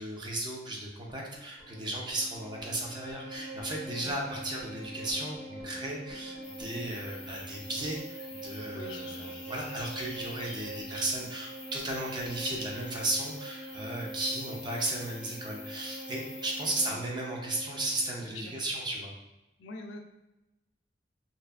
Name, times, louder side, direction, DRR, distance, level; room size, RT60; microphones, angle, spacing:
voice 1, 0.0-19.1, right 1 dB, 25° right, -1 dB, 0.5 m, -35 dB
sound 1, 1.1-7.0, equal, 45° right, 1.0 m, -55 dB
Bowed string instrument, 1.6-18.2, right 1 dB, 70° right, 1.1 m, -44 dB
sound 2, 6.4-16.9, left 3 dB, 30° left, 0.6 m, -48 dB
voice 2, 8.7-9.3 16.7-16.9 18.3-18.6 19.6-20.0, left 2 dB, 90° left, 4 dB, 0.4 m, -44 dB
2.6 x 2.4 x 2.3 m, 0.98 s
head